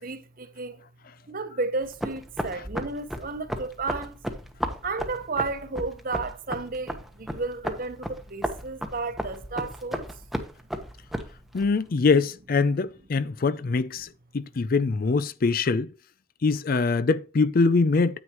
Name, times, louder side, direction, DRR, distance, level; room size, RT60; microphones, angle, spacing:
voice 1, 0.0-0.8 1.3-4.2 4.8-10.1, right 3 dB, 45° right, 1.0 m, -32 dB
sound 1, 1.8-11.7, equal, ahead, 1.0 m, -34 dB
voice 2, 11.5-15.9 16.4-18.2, left 4 dB, 45° left, 0.4 m, -23 dB
9.6 x 8.9 x 3.0 m
head